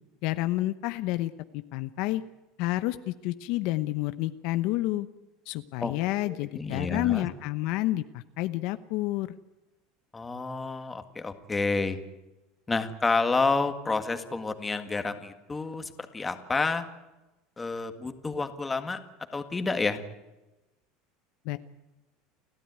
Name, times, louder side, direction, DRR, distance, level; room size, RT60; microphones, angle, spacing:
voice 1, 0.2-2.2 2.6-5.1 5.5-9.3 21.4-21.6, left 17 dB, 60° left, 12 dB, 0.9 m, -29 dB
voice 2, 6.2-7.3 10.1-12.0 12.7-16.8 17.6-19.0 19.3-20.0, left 3 dB, 15° left, 8 dB, 1.8 m, -29 dB
29.5 x 13.0 x 9.5 m, 1.1 s
supercardioid pair, 140°, 0 cm